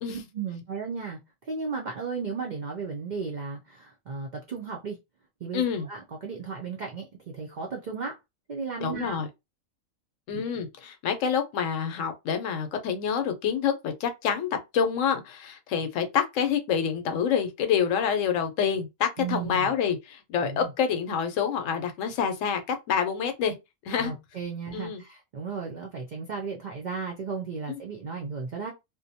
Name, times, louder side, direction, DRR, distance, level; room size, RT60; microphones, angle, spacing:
voice 1, 0.1-5.0 5.4-8.2 8.5-9.2 19.2-19.7 20.4-20.7 24.0-28.7, right 5 dB, 75° right, 0.4 m, -35 dB
voice 2, 5.5-5.9 8.8-9.3 10.3-23.5 23.9-24.1 24.7-25.0 27.7-27.8, left 7 dB, 75° left, 0.9 m, -27 dB
2.5 x 2.1 x 2.7 m
omnidirectional pair, 1.4 m